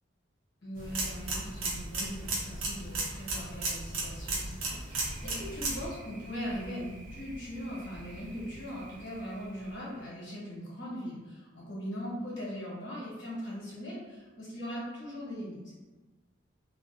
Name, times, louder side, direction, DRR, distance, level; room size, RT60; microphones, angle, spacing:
voice 1, 0.6-15.6, equal, 65° left, -6 dB, 0.9 m, -40 dB
sound 1, 0.8-5.8, right 2 dB, 90° right, 0.6 m, -35 dB
Thunder, 4.9-10.2, right 1 dB, 40° right, 0.4 m, -49 dB
2.4 x 2.1 x 2.4 m, 1.2 s
head